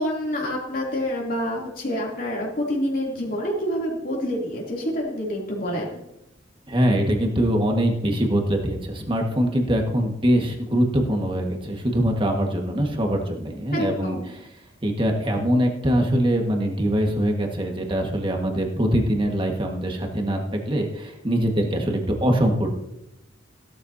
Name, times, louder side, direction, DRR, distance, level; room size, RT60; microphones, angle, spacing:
voice 1, 0.0-6.0 13.7-14.3, equal, 45° left, -2 dB, 3.0 m, -27 dB
voice 2, 6.7-14.2 14.8-22.7, equal, 25° right, 2 dB, 1.7 m, -23 dB
16.0 x 12.5 x 2.8 m, 0.85 s
head